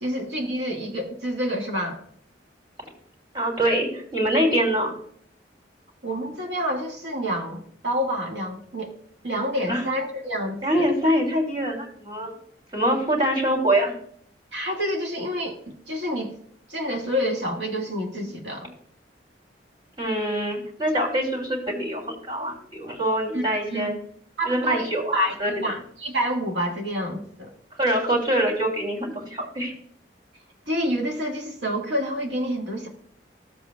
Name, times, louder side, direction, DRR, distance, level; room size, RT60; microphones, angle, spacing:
voice 1, 0.0-2.0 6.0-8.9 9.2-10.9 14.5-16.3 16.7-18.7 23.3-23.4 23.7-23.9 24.4-27.5 30.7-32.9, equal, 70° right, 1 dB, 1.6 m, -28 dB
voice 2, 3.3-4.9 9.7-9.8 10.6-12.3 12.7-13.9 20.0-23.9 24.4-25.6 27.8-29.7, right 1 dB, 25° right, -2 dB, 2.6 m, -24 dB
14.0 x 7.7 x 2.2 m, 0.62 s
head